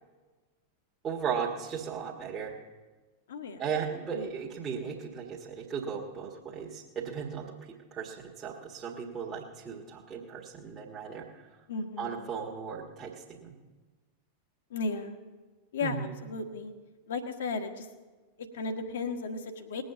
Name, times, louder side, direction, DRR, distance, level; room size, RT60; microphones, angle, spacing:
voice 1, 1.0-2.5 3.6-7.5 7.9-11.3 12.0-13.5 15.8-16.1, right 7 dB, 25° right, -3 dB, 1.7 m, -36 dB
voice 2, 3.3-3.6 4.1-4.3 11.7-12.1 14.7-15.2 15.7-16.7 17.1-17.9 18.4-19.8, left 3 dB, 60° left, 6 dB, 1.4 m, -35 dB
19.5 x 7.9 x 6.9 m, 1.3 s
figure-of-eight pair, 90°, 0 cm